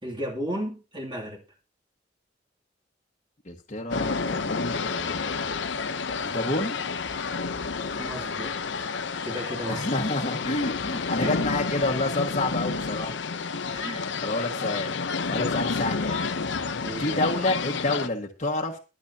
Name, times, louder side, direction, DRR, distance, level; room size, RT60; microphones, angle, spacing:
voice 1, 0.0-1.4 8.0-8.5 8.8-8.9 9.2-9.9 11.2-11.3 13.7-14.1 15.3-15.5 16.8-17.2, equal, 25° right, 2.7 m, -34 dB
voice 2, 3.4-5.2 6.2-6.8 9.7-13.1 14.2-14.9 15.3-16.3 17.0-18.8, left 2 dB, 40° left, 1.6 m, -29 dB
sound 1, 3.9-18.1, left 4 dB, 75° left, 0.8 m, -30 dB
22.5 x 8.2 x 2.8 m
head